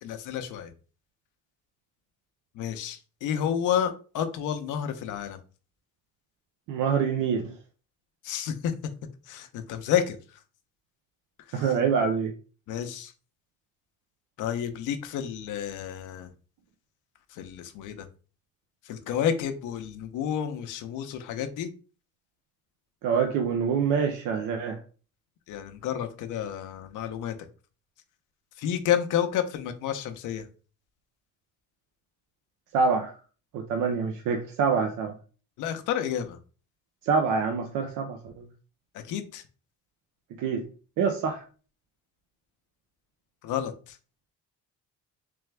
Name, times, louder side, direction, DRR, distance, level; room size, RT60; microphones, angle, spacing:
voice 1, 0.0-0.7 2.5-5.4 8.2-8.7 9.3-10.4 11.5-11.7 12.7-13.1 14.4-16.3 17.3-18.1 18.8-21.7 25.5-27.3 28.6-30.5 35.6-36.4 38.9-39.4 43.4-44.0, left 9 dB, 90° left, 8 dB, 0.7 m, -30 dB
voice 2, 6.7-7.6 11.5-12.3 23.0-24.8 32.7-33.2 33.5-35.1 37.0-38.5 40.4-40.7 41.0-41.5, right 6 dB, 90° right, 5 dB, 0.6 m, -26 dB
3.4 x 3.3 x 3.3 m, 0.37 s
cardioid pair, 90°, 30 cm